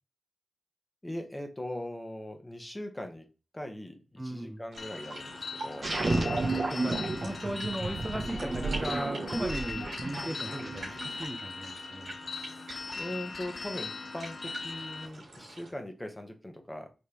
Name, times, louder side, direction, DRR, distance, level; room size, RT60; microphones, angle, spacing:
voice 1, 1.0-3.3 3.5-5.9 12.3-12.6 12.9-16.9, left 1 dB, 15° left, 5 dB, 1.1 m, -40 dB
voice 2, 4.2-4.6 6.0-6.4 6.7-12.1, right 1 dB, 15° right, 3 dB, 0.7 m, -37 dB
sound 1, 4.7-15.7, right 2 dB, 85° right, 1.8 m, -46 dB
sound 2, 4.8-15.1, left 4 dB, 65° left, 0.5 m, -40 dB
sound 3, 5.8-11.2, right 2 dB, 50° right, 1.1 m, -32 dB
5.0 x 3.3 x 2.9 m, 0.32 s
cardioid pair, 45°, 0 cm